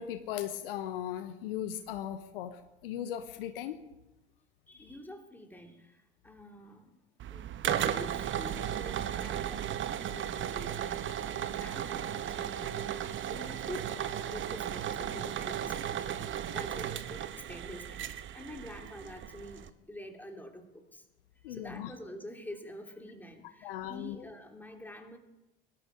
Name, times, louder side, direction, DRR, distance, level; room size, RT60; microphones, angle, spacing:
voice 1, 0.0-3.8 21.4-21.9 23.6-24.2, left 10 dB, 70° left, 10 dB, 1.1 m, -38 dB
voice 2, 4.7-6.9 7.3-21.0 21.5-25.2, left 1 dB, 5° left, 3 dB, 2.9 m, -47 dB
sound 1, 7.2-19.7, right 10 dB, 40° right, 1.1 m, -35 dB
19.5 x 12.5 x 5.2 m, 0.96 s
figure-of-eight pair, 60°, 29 cm